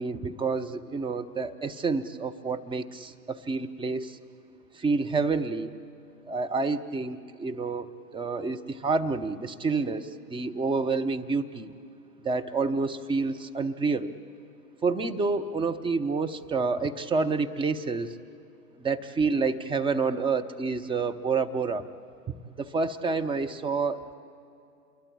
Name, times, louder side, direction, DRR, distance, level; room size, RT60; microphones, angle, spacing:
voice 1, 0.0-4.2 4.8-5.7 6.3-7.9 8.1-11.7 12.2-14.1 14.8-18.1 18.8-21.8 22.3-24.1, right 4 dB, 10° right, 8 dB, 0.8 m, -28 dB
28.0 x 22.0 x 8.6 m, 2.6 s
figure-of-eight pair, 100°, 45 cm